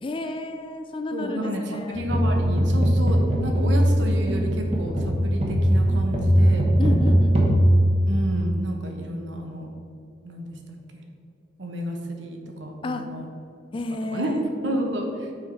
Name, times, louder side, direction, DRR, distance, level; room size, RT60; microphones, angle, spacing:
voice 1, 0.0-2.1 6.8-7.6 12.8-13.1 13.7-14.5, left 2 dB, 25° left, 7 dB, 0.3 m, -31 dB
voice 2, 1.1-6.7 8.1-9.7 10.2-11.0 11.6-13.3 14.1-14.3 14.6-15.3, right 1 dB, 70° right, 2 dB, 1.0 m, -31 dB
sound 1, 1.9-8.6, equal, 30° right, 1.0 m, -20 dB
6.3 x 4.6 x 5.1 m, 2.5 s
head